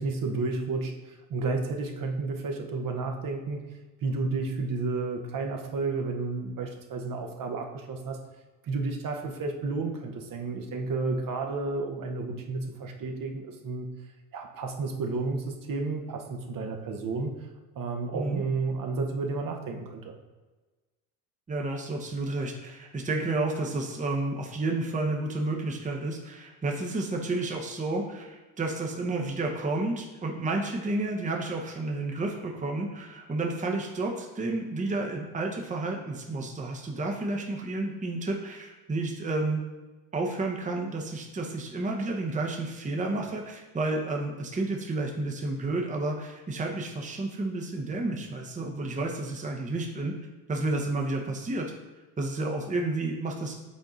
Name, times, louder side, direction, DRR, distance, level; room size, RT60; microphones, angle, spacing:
voice 1, 0.0-3.7 4.0-8.2 8.6-13.9 14.3-17.5 17.7-20.1, right 3 dB, 40° right, 2 dB, 1.1 m, -31 dB
voice 2, 18.1-18.4 21.5-39.6 40.1-50.2 50.5-51.7 52.2-53.5, right 2 dB, 15° right, 1 dB, 0.9 m, -31 dB
7.4 x 3.6 x 4.0 m, 1.2 s
hypercardioid pair, 70°, 48 cm